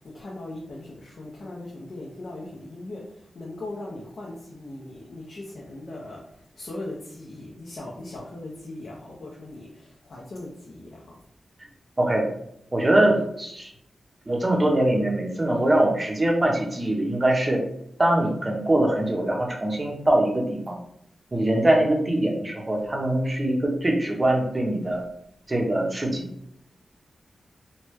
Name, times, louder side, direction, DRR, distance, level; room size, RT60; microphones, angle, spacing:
voice 1, 0.1-6.2 6.6-11.1, left 2 dB, 60° left, -5 dB, 0.6 m, -39 dB
voice 2, 12.0-12.3 12.7-13.7 14.3-17.6 18.0-20.8 21.3-25.0 25.5-26.3, right 1 dB, 25° right, 0 dB, 0.6 m, -22 dB
3.0 x 2.2 x 3.0 m, 0.74 s
wide cardioid pair, 125°, 0 cm